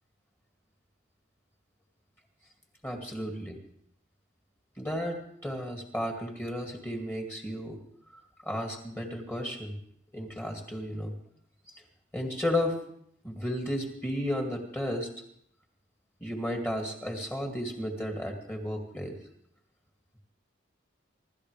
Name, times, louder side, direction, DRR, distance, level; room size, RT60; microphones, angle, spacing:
voice 1, 2.8-3.5 4.8-7.8 8.4-9.8 10.1-11.1 12.1-12.8 13.2-15.1 16.2-19.2, left 1 dB, 10° left, 1 dB, 2.3 m, -33 dB
26.0 x 13.0 x 3.4 m, 0.68 s
head